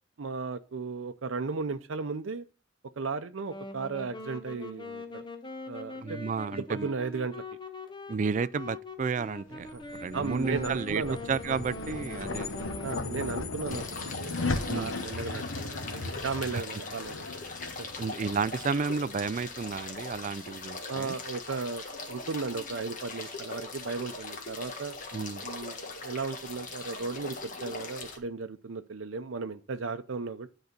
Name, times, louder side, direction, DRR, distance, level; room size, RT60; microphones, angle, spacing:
voice 1, 0.2-2.4 3.0-5.2 5.7-6.2 6.5-7.4 9.7-9.8 10.1-11.4 12.8-14.4 14.7-17.3 17.8-17.9 20.9-25.0 25.4-30.5, right 4 dB, 80° right, 0.6 m, -35 dB
Wind instrument woodwind instrument, 3.5-13.0, left 2 dB, 25° left, 1.0 m, -43 dB
voice 2, 6.0-6.9 8.1-9.7 10.0-11.0 11.3-12.5 14.7-14.9 16.5-16.6 18.0-21.1 25.1-25.4, right 5 dB, 40° right, 0.3 m, -32 dB
sound 1, 9.4-20.0, left 3 dB, 85° left, 1.2 m, -37 dB
sound 2, 13.7-28.2, left 3 dB, 40° left, 1.5 m, -41 dB
10.5 x 4.0 x 6.6 m
head